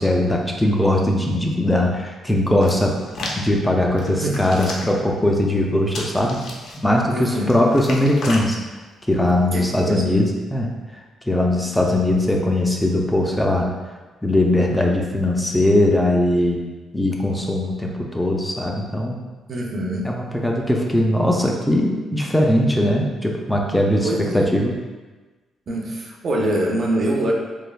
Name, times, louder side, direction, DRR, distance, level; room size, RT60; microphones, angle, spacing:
voice 1, 0.0-6.4 6.8-8.6 9.1-13.7 14.2-16.6 16.9-19.2 20.0-24.7, left 1 dB, 10° left, 0 dB, 0.3 m, -20 dB
Hands, 2.6-3.4 4.0-5.0 5.9-6.8 7.3-8.5 9.2-9.4, left 2 dB, 70° left, 0.5 m, -34 dB
voice 2, 7.1-7.7 9.5-10.1 19.5-20.1 24.0-24.5 25.7-27.3, right 1 dB, 50° right, -1 dB, 0.5 m, -24 dB
3.2 x 2.3 x 2.2 m, 1.3 s
cardioid pair, 90°, 0 cm